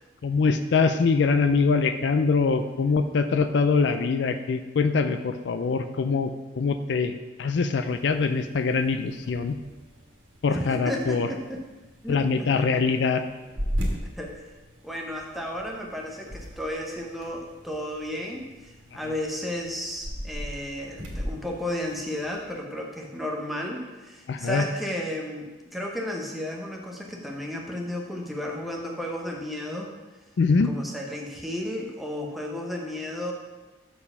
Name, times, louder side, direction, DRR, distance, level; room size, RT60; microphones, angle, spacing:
voice 1, 0.2-9.6 10.4-11.3 12.1-13.2 24.3-24.6 30.4-30.7, left 4 dB, 65° left, 9 dB, 0.4 m, -23 dB
sound 1, 7.8-22.5, equal, 80° right, 1.6 m, -38 dB
voice 2, 10.5-11.6 12.0-12.8 14.2-14.5 14.8-29.9 30.6-33.3, left 1 dB, ahead, -1 dB, 0.8 m, -33 dB
6.9 x 4.7 x 5.5 m, 1.2 s
head